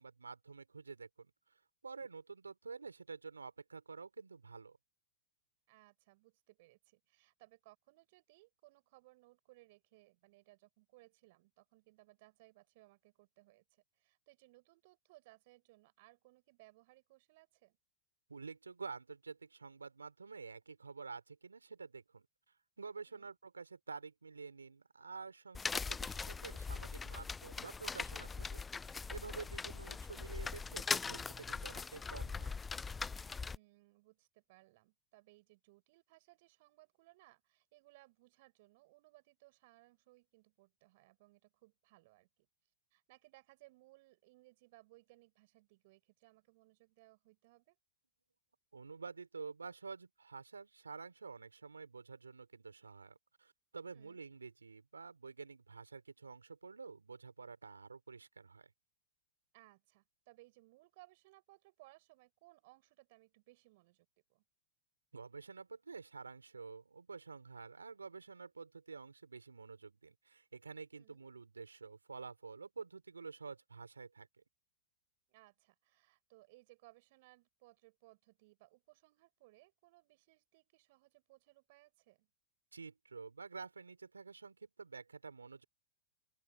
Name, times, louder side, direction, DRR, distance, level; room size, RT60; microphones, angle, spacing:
voice 1, 0.0-4.8 18.3-32.5 48.7-58.7 65.1-74.3 82.7-85.6, right 4 dB, 90° right, 3.4 m, -50 dB
voice 2, 5.7-17.8 23.1-23.4 33.4-42.5 42.9-47.8 53.9-54.3 59.5-64.4 70.9-71.3 75.3-82.3, right 21 dB, 55° right, 6.9 m, -64 dB
sound 1, 25.5-33.6, left 4 dB, 15° left, 0.5 m, -41 dB
open air
hypercardioid pair, 100°, 0 cm